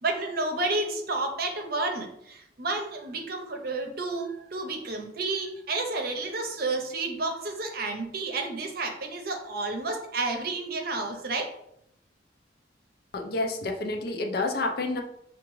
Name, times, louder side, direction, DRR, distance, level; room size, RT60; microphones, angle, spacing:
voice 1, 0.0-11.5, right 3 dB, 55° right, 4 dB, 0.7 m, -31 dB
voice 2, 13.1-15.0, left 2 dB, 55° left, 2 dB, 0.6 m, -29 dB
5.8 x 2.4 x 3.1 m, 0.76 s
head